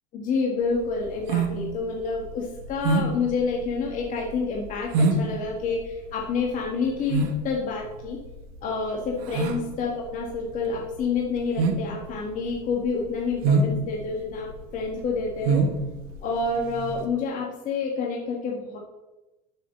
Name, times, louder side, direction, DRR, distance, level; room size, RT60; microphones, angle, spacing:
voice 1, 0.1-8.2 8.6-15.6 16.2-18.8, left 4 dB, 45° left, -1 dB, 1.8 m, -28 dB
sound 1, 0.7-17.0, right 3 dB, 75° right, 1.6 m, -27 dB
8.3 x 6.5 x 7.6 m, 1.0 s
supercardioid pair, 130°, 19 cm